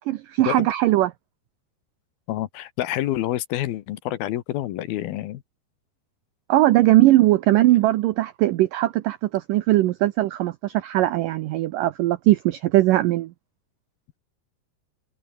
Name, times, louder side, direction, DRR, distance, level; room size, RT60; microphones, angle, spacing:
voice 1, 0.1-1.1 6.5-13.3, right 16 dB, 80° right, 1.9 m, -19 dB
voice 2, 2.3-5.4, left 14 dB, 70° left, 2.8 m, -28 dB
omnidirectional pair, 4.8 m